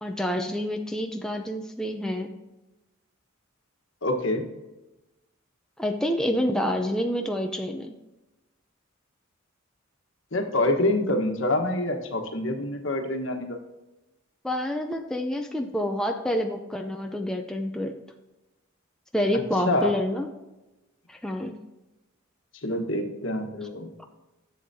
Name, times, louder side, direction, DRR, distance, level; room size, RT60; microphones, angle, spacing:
voice 1, 0.0-2.3 5.8-7.9 14.4-18.0 19.1-20.3 21.1-21.5, left 1 dB, 5° left, 3 dB, 0.5 m, -28 dB
voice 2, 4.0-4.4 10.3-13.6 19.7-19.9 22.6-23.9, left 1 dB, 65° left, 4 dB, 1.3 m, -26 dB
11.0 x 7.8 x 2.8 m, 1.0 s
head